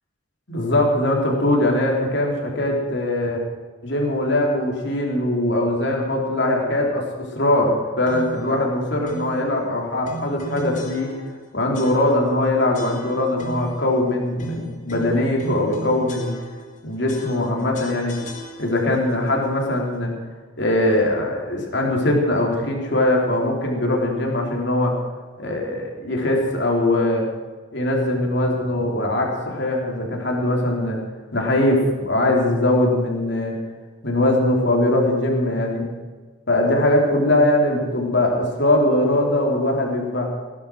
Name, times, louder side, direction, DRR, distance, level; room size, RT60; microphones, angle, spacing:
voice 1, 0.5-3.4 3.8-11.1 11.5-16.3 16.8-18.2 18.6-20.1 20.6-25.0 25.4-27.3 27.7-31.0 31.3-33.6 34.0-35.8 36.5-40.3, left 1 dB, 55° left, 0 dB, 3.5 m, -21 dB
sound 1, 8.1-8.5 9.1-9.4 10.0-11.4 11.7-12.4 12.7-13.8 14.4-16.8 17.1-19.0, equal, 35° left, 2.6 m, -36 dB
18.0 x 11.0 x 6.3 m, 1.4 s
head